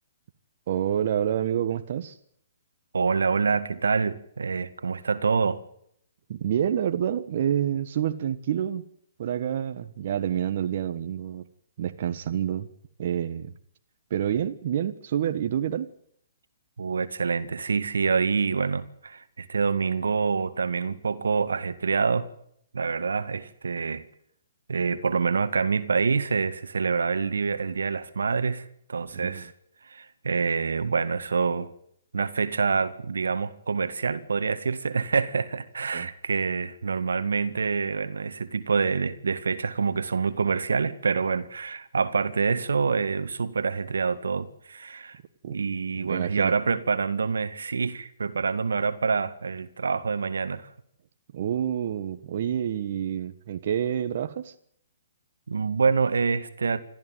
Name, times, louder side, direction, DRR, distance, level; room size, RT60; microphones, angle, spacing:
voice 1, 0.7-2.2 6.3-8.8 9.2-11.4 11.8-12.7 13.0-13.5 14.1-15.9 29.1-29.5 35.9-36.1 45.4-45.6 46.0-46.5 51.3-54.5, right 9 dB, 55° right, 1.4 m, -28 dB
voice 2, 2.9-5.6 16.8-22.3 22.7-24.0 24.7-29.5 29.9-31.7 32.1-45.2 45.5-50.7 55.5-56.8, right 5 dB, 80° right, 1.8 m, -26 dB
26.5 x 14.5 x 9.2 m
hypercardioid pair, 135°, 0 cm